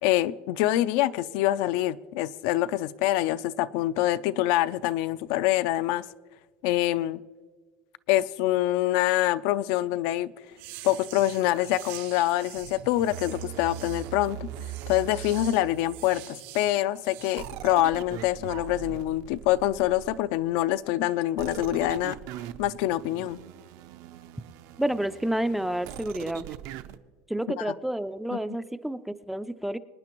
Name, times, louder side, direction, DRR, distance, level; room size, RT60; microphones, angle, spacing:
voice 1, 0.0-6.0 6.6-7.2 8.1-10.3 10.8-14.5 14.9-22.2 22.6-23.4 27.6-27.7 28.3-28.4, left 14 dB, 70° left, 0.4 m, -25 dB
sound 1, 10.5-17.5, right 14 dB, 85° right, 3.2 m, -45 dB
sound 2, 12.5-16.3 17.4-20.4 21.4-27.0, right 11 dB, 65° right, 0.5 m, -41 dB
voice 2, 24.8-26.5 27.3-29.8, right 1 dB, 5° right, 0.3 m, -29 dB
25.0 x 9.7 x 3.0 m
cardioid pair, 150°, 6 cm